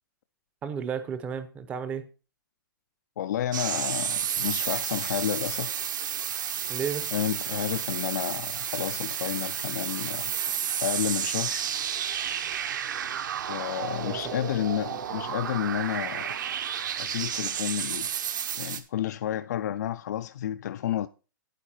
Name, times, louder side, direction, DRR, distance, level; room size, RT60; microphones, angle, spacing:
voice 1, 0.6-2.0 6.7-7.1 14.0-14.3, right 7 dB, 10° right, 0.6 m, -33 dB
voice 2, 3.2-5.8 7.1-10.3 10.8-11.7 13.5-16.3 17.0-18.1 18.6-21.1, left 11 dB, 55° left, 0.4 m, -31 dB
sound 1, 3.5-18.8, right 9 dB, 60° right, 1.1 m, -31 dB
9.1 x 8.2 x 4.2 m
hypercardioid pair, 170°, 11 cm